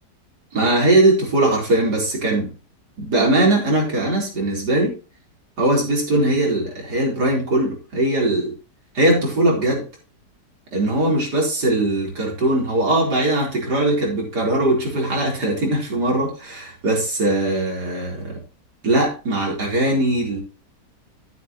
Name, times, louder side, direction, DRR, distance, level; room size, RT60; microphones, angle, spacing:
voice 1, 0.5-2.6 3.0-4.9 5.6-8.5 8.9-9.8 10.7-18.4 18.8-20.4, right 1 dB, 65° right, -2 dB, 4.7 m, -20 dB
11.5 x 9.3 x 3.0 m, 0.32 s
omnidirectional pair, 1.9 m